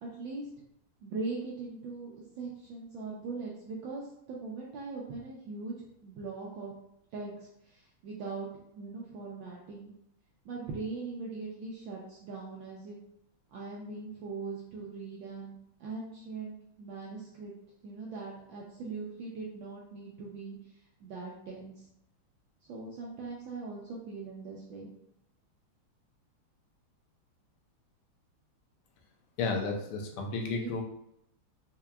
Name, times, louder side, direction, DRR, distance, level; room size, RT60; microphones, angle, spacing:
voice 1, 0.0-0.5 1.0-5.8 6.0-6.7 7.1-9.9 10.4-13.0 13.5-15.5 15.8-17.5 17.8-20.6 21.0-21.9 22.7-24.9 30.5-30.8, right 3 dB, 75° right, -3 dB, 1.3 m, -40 dB
voice 2, 29.4-30.8, left 4 dB, 85° left, 1 dB, 1.6 m, -32 dB
4.6 x 2.8 x 2.2 m, 0.76 s
omnidirectional pair, 2.4 m